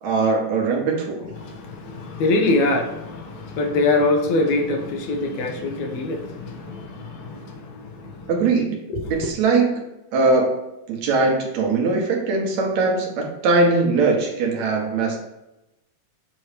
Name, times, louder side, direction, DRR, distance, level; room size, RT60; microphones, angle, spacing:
voice 1, 0.0-1.3 8.3-8.8 9.1-9.7 10.1-10.6 10.9-15.2, right 3 dB, 70° right, 0 dB, 2.3 m, -20 dB
voice 2, 1.4-8.3 8.9-9.3, left 2 dB, 75° left, 2 dB, 2.1 m, -24 dB
7.6 x 3.1 x 5.0 m, 0.93 s
omnidirectional pair, 3.4 m